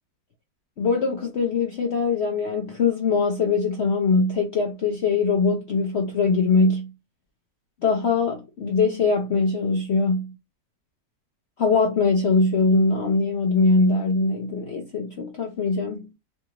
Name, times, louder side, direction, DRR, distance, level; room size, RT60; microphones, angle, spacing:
voice 1, 0.8-6.9 7.8-10.3 11.6-16.1, left 4 dB, 65° left, 0.6 m, -22 dB
3.9 x 2.4 x 2.9 m
omnidirectional pair, 1.9 m